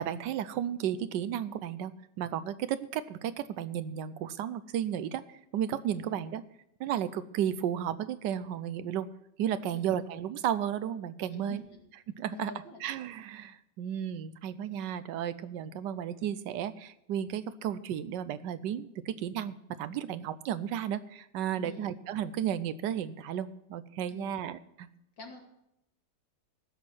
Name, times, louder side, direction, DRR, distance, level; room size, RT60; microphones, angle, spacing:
voice 1, 0.0-6.4 6.8-9.1 9.4-11.6 12.1-12.5 12.8-24.9, right 10 dB, 75° right, 14 dB, 1.2 m, -33 dB
voice 2, 11.3-11.8 12.3-12.8 21.6-21.8 24.1-24.4 25.2-25.4, left 5 dB, 85° left, 1 dB, 2.8 m, -47 dB
15.0 x 6.2 x 7.5 m, 0.81 s
omnidirectional pair, 1.9 m